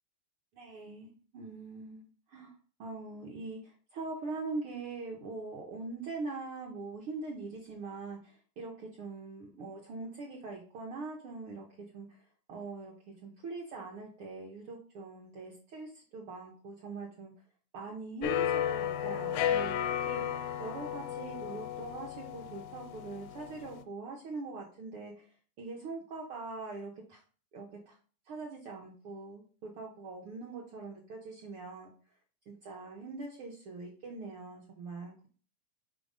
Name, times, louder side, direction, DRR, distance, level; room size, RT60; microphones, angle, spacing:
voice 1, 0.5-2.5 2.8-11.7 11.9-12.2 12.5-12.9 13.2-17.3 17.7-19.7 20.1-25.3 25.6-27.2 27.5-28.0 28.3-31.9 32.5-35.3, right 3 dB, 70° right, 0 dB, 1.3 m, -42 dB
sound 1, 18.2-23.8, left 10 dB, 80° left, 1.8 m, -34 dB
5.1 x 3.9 x 5.2 m, 0.40 s
omnidirectional pair, 3.4 m